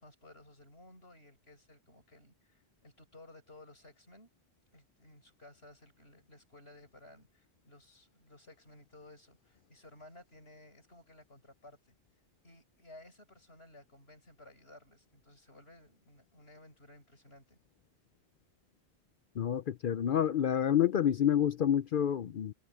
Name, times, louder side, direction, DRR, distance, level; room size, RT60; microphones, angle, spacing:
voice 1, 0.0-4.3 4.7-11.9 12.4-17.6, left 2 dB, 85° left, 8.4 m, -57 dB
voice 2, 19.4-22.5, left 9 dB, 60° left, 0.7 m, -28 dB
omnidirectional pair, 1.0 m